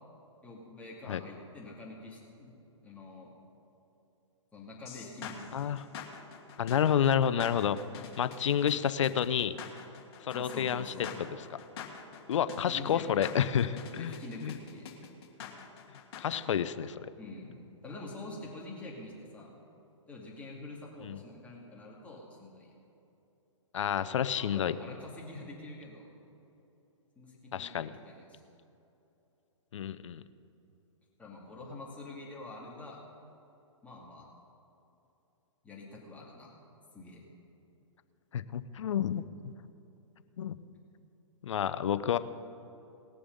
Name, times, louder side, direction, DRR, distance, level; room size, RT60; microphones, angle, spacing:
voice 1, 0.4-2.5 2.8-3.3 4.5-5.7 10.3-11.1 12.7-13.4 14.0-14.9 17.2-19.5 20.1-22.7 24.4-26.1 27.2-28.4 31.2-33.0 33.8-34.3 35.6-36.5 36.9-37.2, left 2 dB, 10° left, -4 dB, 2.4 m, -46 dB
sound 1, 4.9-16.4, left 7 dB, 55° left, 1.9 m, -45 dB
voice 2, 5.5-5.8 6.6-7.8 8.2-9.5 10.2-11.3 12.3-14.1 14.4-14.5 16.2-16.9 21.0-21.2 23.7-24.8 27.5-27.9 29.7-30.2 38.3-39.5 40.4-40.6 41.4-42.2, left 9 dB, 70° left, 13 dB, 0.7 m, -29 dB
19.5 x 6.9 x 5.4 m, 3.0 s
hypercardioid pair, 135°, 16 cm